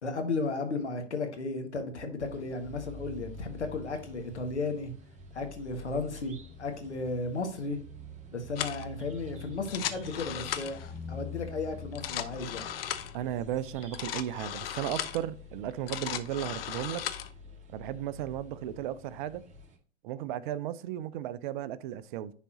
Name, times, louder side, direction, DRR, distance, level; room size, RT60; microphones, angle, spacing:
voice 1, 0.0-4.9 5.3-7.8 8.3-12.7, left 3 dB, 85° left, 1.6 m, -34 dB
sound 1, 2.2-19.8, left 3 dB, 20° right, 2.0 m, -46 dB
sound 2, 8.6-8.9 9.6-10.9 11.8-13.2 13.8-15.2 15.7-17.3, left 11 dB, 60° left, 0.8 m, -36 dB
voice 2, 13.1-17.0 17.7-19.4 20.0-22.3, right 11 dB, 45° right, 0.6 m, -35 dB
10.0 x 4.1 x 2.8 m
figure-of-eight pair, 100°, 33 cm